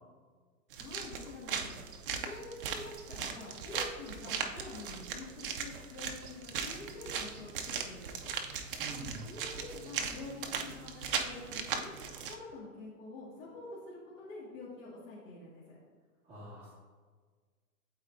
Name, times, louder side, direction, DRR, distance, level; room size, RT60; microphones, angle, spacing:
sound 1, 0.7-12.3, right 6 dB, 40° right, 0.5 m, -38 dB
voice 1, 0.8-1.8 2.1-8.3 9.2-11.9 12.3-15.8, left 3 dB, 60° left, -8 dB, 2.1 m, -47 dB
voice 2, 8.8-9.2 16.2-16.7, right 2 dB, 10° right, -12 dB, 1.7 m, -45 dB
12.0 x 4.2 x 2.6 m, 1.5 s
hypercardioid pair, 155°, 45 cm